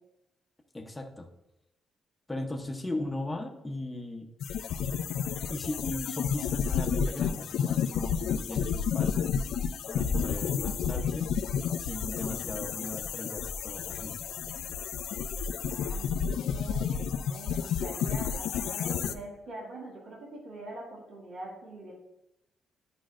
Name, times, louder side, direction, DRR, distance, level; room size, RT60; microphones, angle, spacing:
voice 1, 0.7-1.3 2.3-4.3 5.5-9.3 9.9-11.3 11.8-14.2, left 1 dB, 10° left, 3 dB, 0.7 m, -38 dB
sound 1, 4.4-19.1, left 7 dB, 80° left, 0.4 m, -31 dB
voice 2, 15.7-21.9, right 2 dB, 70° right, -4 dB, 2.1 m, -44 dB
10.5 x 5.2 x 2.5 m, 0.89 s
cardioid pair, 160°, 0 cm